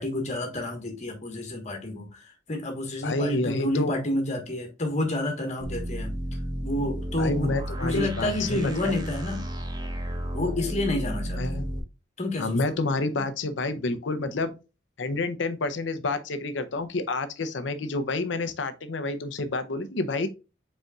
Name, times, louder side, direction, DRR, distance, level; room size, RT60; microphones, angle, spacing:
voice 1, 0.0-6.1 6.6-7.6 7.8-9.5 10.3-11.6 12.2-12.6, left 1 dB, 40° left, 1.4 m, -29 dB
voice 2, 3.0-3.9 7.2-8.9 11.4-11.7 12.4-14.5 15.0-20.3, left 2 dB, 75° left, 0.7 m, -29 dB
sound 1, 5.6-11.8, equal, 20° right, 0.8 m, -33 dB
5.3 x 4.3 x 2.4 m
head